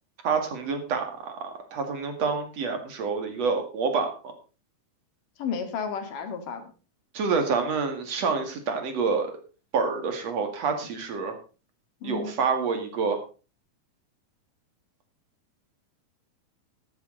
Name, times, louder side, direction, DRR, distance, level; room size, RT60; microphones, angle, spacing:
voice 1, 0.2-4.1 7.1-9.3 9.7-11.4 12.0-13.2, right 5 dB, 50° right, 6 dB, 2.9 m, -27 dB
voice 2, 5.4-6.7 12.0-12.3, left 6 dB, 60° left, 7 dB, 3.4 m, -32 dB
13.0 x 12.0 x 4.0 m, 0.35 s
omnidirectional pair, 4.4 m